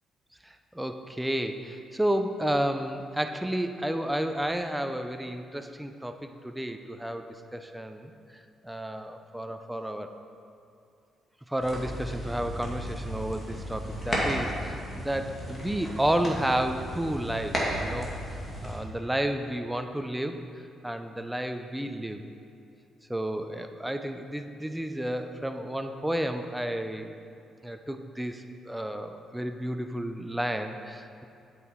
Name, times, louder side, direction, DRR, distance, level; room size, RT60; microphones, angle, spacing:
voice 1, 0.4-8.1 8.6-10.1 11.5-18.1 18.6-20.4 20.8-22.2 23.1-27.1 27.6-31.2, right 1 dB, 5° right, 6 dB, 0.5 m, -31 dB
sound 1, 11.6-18.8, equal, 35° left, 2.2 m, -34 dB
8.1 x 7.4 x 4.5 m, 2.5 s
cardioid pair, 90°, 0 cm